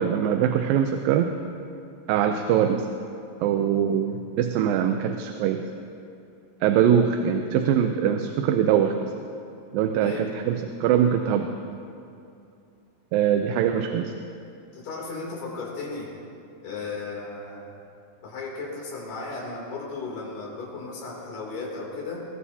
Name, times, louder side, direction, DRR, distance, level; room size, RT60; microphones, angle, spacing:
voice 1, 0.0-1.3 2.1-2.9 3.4-5.6 6.6-9.1 9.7-11.5 13.1-14.1, right 9 dB, 90° right, 6 dB, 2.4 m, -22 dB
voice 2, 14.7-16.1 16.6-17.7 18.2-22.2, left 3 dB, 65° left, -4 dB, 4.6 m, -35 dB
21.0 x 20.5 x 2.8 m, 2.5 s
omnidirectional pair, 4.0 m